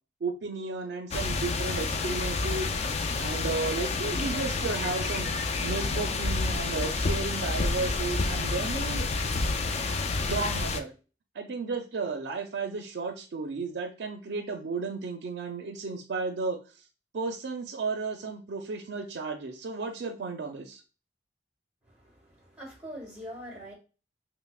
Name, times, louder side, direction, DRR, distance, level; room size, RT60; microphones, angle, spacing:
voice 1, 0.2-2.7 3.2-5.3 5.6-9.1 10.3-10.9 11.4-16.6 17.1-20.8, right 4 dB, 65° right, 0.4 m, -33 dB
sound 1, 1.1-10.8, left 3 dB, 35° left, 0.3 m, -29 dB
voice 2, 21.8-23.7, equal, 5° right, 1.3 m, -43 dB
5.3 x 2.0 x 2.3 m
head